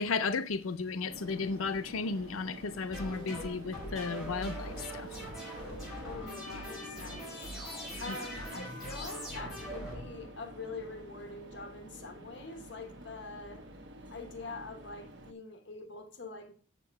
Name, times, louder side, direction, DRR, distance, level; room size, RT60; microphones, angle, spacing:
voice 1, 0.0-5.2 8.1-8.2, left 4 dB, 85° left, 0.6 m, -34 dB
sound 1, 1.1-15.3, right 1 dB, 55° right, 1.1 m, -49 dB
sound 2, 2.9-10.6, equal, 5° right, 5.0 m, -42 dB
voice 2, 6.0-7.5 8.0-13.7 14.1-16.5, left 3 dB, 55° left, 1.1 m, -44 dB
7.5 x 7.3 x 4.6 m
head